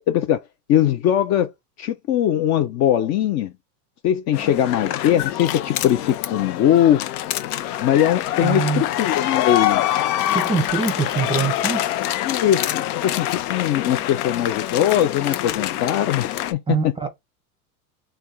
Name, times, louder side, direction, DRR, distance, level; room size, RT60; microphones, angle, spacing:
voice 1, 0.1-0.4 0.7-1.5 1.8-3.5 4.0-7.0 7.8-9.8 12.2-16.8, left 11 dB, 35° left, 0.5 m, -20 dB
sound 1, 4.3-16.5, left 13 dB, 70° left, 0.8 m, -25 dB
voice 2, 8.4-8.8 10.3-11.8 16.7-17.1, right 5 dB, 10° right, 0.7 m, -23 dB
3.3 x 2.4 x 3.9 m
supercardioid pair, 125°, 48 cm